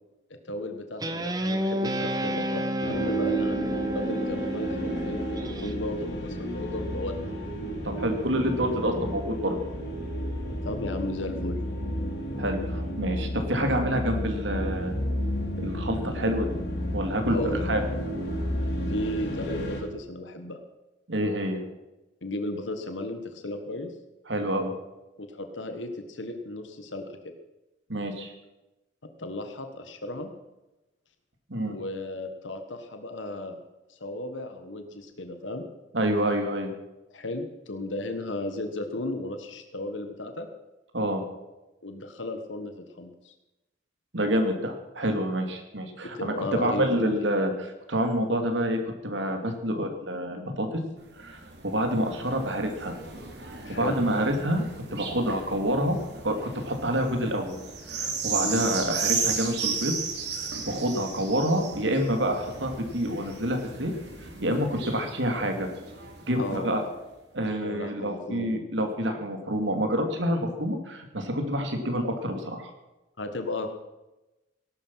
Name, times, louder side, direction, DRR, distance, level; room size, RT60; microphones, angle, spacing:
voice 1, 0.5-7.3 10.6-11.5 17.3-17.7 18.9-20.6 22.2-23.9 25.2-27.3 29.2-30.3 31.7-33.6 33.9-35.6 37.1-40.5 41.8-43.3 46.1-47.3 53.6-54.0 58.4-58.6 66.4-66.9 67.6-68.6 73.2-73.7, left 2 dB, 90° left, 6 dB, 1.5 m, -35 dB
Guitar, 1.0-5.7, equal, 20° right, 1.1 m, -30 dB
sound 1, 2.8-19.8, equal, 65° left, 3.6 m, -32 dB
voice 2, 7.8-9.6 12.4-15.0 15.6-16.5 16.9-17.4 17.6-17.8 21.1-21.6 24.3-24.7 27.9-28.3 31.5-31.7 35.9-36.7 40.9-41.2 44.1-50.7 51.2-52.9 53.7-54.6 54.9-56.0 56.2-57.6 57.9-59.9 60.4-63.9 64.4-65.7 66.3-66.8 67.3-72.7, equal, 80° right, 4 dB, 2.9 m, -27 dB
sound 2, 51.0-66.8 67.5-67.6, right 5 dB, 65° right, 3.3 m, -35 dB
18.5 x 12.0 x 5.8 m, 1.0 s
head